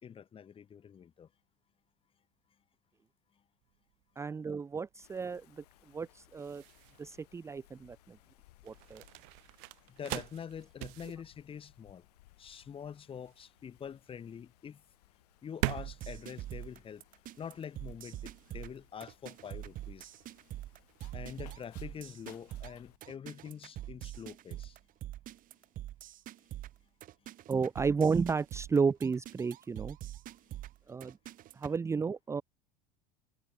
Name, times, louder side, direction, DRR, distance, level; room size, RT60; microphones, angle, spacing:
voice 1, 0.0-1.3 9.9-12.0 12.4-14.8 15.4-17.0 17.4-20.1 21.1-24.8, left 8 dB, 25° left, 4.6 m, -45 dB
sound 1, 3.6-17.5, right 39 dB, 70° right, 1.0 m, -43 dB
voice 2, 4.2-6.6 7.0-8.2 8.6-9.0 27.5-30.0 30.9-31.2 31.5-32.4, right 5 dB, 15° right, 0.7 m, -32 dB
Wind, 5.0-23.0, left 18 dB, 85° left, 7.4 m, -64 dB
sound 2, 15.8-31.8, right 14 dB, 45° right, 3.4 m, -44 dB
supercardioid pair, 125°, 20 cm